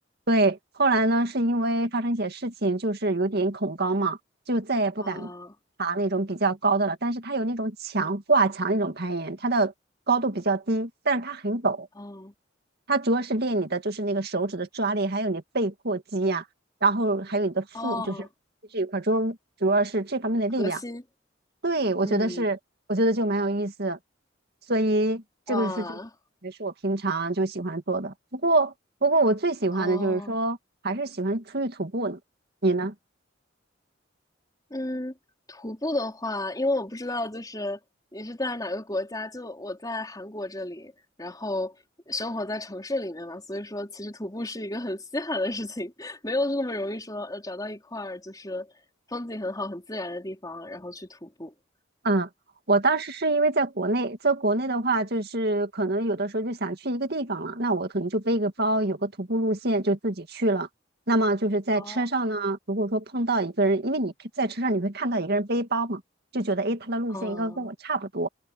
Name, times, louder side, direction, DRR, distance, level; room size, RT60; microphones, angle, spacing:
voice 1, 0.3-4.2 4.5-5.3 5.8-9.7 10.1-11.9 12.9-16.4 16.8-18.2 18.7-20.8 21.6-22.6 22.9-24.0 24.7-26.0 26.4-28.7 29.0-30.6 30.8-32.2 32.6-32.9 52.0-52.3 52.7-60.7 61.1-66.0 66.3-68.3, right 2 dB, 55° right, 2.2 m, -25 dB
voice 2, 5.0-5.5 12.0-12.3 17.7-18.3 20.6-21.0 22.0-22.5 25.5-26.1 29.7-30.3 34.7-35.1 35.5-37.8 38.1-40.9 41.2-41.8 42.1-48.7 49.1-51.5 61.7-62.0 67.1-67.7, left 2 dB, 20° left, 4.2 m, -32 dB
head